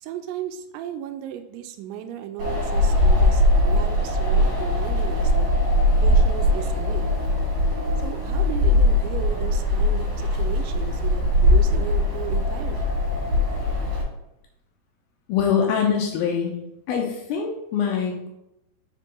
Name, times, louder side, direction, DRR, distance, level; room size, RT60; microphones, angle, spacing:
voice 1, 0.0-5.5 6.0-7.1 8.0-12.9, right 10 dB, 85° right, 8 dB, 2.7 m, -35 dB
Wind, 2.4-14.0, left 1 dB, 55° right, 3.4 m, -21 dB
voice 2, 15.3-16.5 16.9-18.3, left 7 dB, 85° left, 1 dB, 2.3 m, -23 dB
6.7 x 3.7 x 3.7 m, 0.86 s
omnidirectional pair, 4.8 m